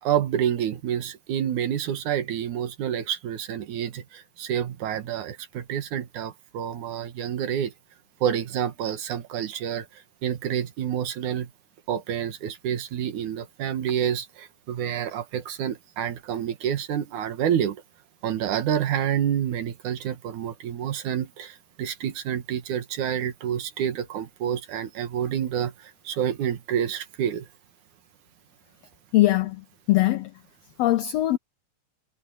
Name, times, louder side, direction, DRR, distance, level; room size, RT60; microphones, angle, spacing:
voice 1, 0.0-7.7 8.2-11.5 11.9-17.8 18.2-27.5, right 9 dB, 85° right, 3.0 m, -28 dB
voice 2, 29.1-30.3 30.8-31.4, left 16 dB, 75° left, 1.6 m, -21 dB
omnidirectional pair, 3.4 m